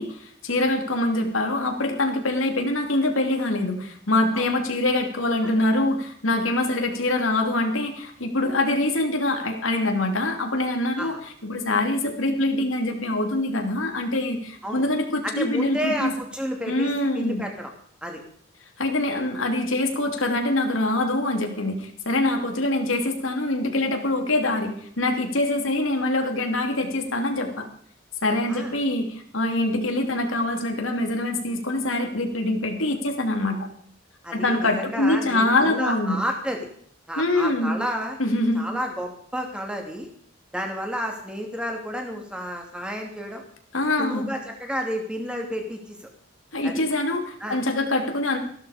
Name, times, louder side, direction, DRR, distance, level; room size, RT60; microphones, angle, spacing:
voice 1, 0.0-11.1 11.4-16.1 16.7-17.4 18.8-27.7 28.2-33.7 34.3-36.2 37.2-37.7 38.2-38.7 43.7-44.3 46.5-48.4, left 2 dB, 85° left, 4 dB, 2.8 m, -24 dB
voice 2, 15.2-17.7 18.0-18.2 28.5-28.7 34.2-36.7 37.1-38.2 38.5-40.1 40.5-43.4 44.0-46.1 46.6-46.8 47.4-47.6, equal, 5° right, 2 dB, 2.7 m, -31 dB
15.5 x 12.5 x 5.0 m, 0.62 s
head